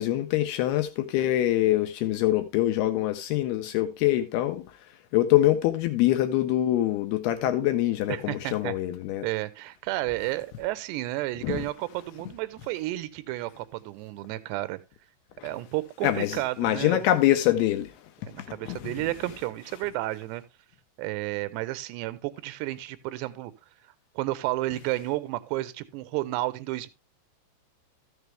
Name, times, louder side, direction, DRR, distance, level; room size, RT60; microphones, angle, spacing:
voice 1, 0.0-4.6 5.1-9.3 11.4-11.6 15.4-15.5 16.0-17.9 18.7-18.9, left 14 dB, 85° left, 2.3 m, -24 dB
voice 2, 8.1-8.7 9.2-14.8 15.4-17.0 18.3-20.4 21.0-23.5 24.2-26.9, right 17 dB, 80° right, 2.7 m, -32 dB
14.0 x 6.8 x 3.2 m
omnidirectional pair, 5.4 m